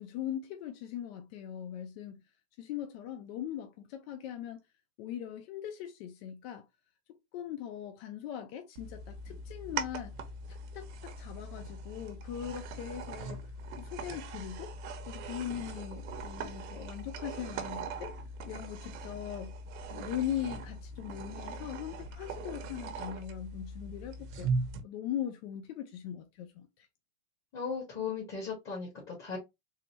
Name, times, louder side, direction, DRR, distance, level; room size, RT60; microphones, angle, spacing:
voice 1, 0.0-2.2 2.6-4.6 5.0-6.7 7.1-10.1 10.5-13.4 13.7-14.8 15.1-18.2 18.5-19.6 19.9-24.6 24.8-26.9, left 10 dB, 50° left, 0.6 m, -40 dB
sound 1, 8.8-24.8, right 3 dB, 60° right, 0.9 m, -40 dB
voice 2, 27.5-29.4, left 5 dB, 30° left, 1.5 m, -37 dB
3.8 x 2.1 x 3.0 m
supercardioid pair, 135°, 38 cm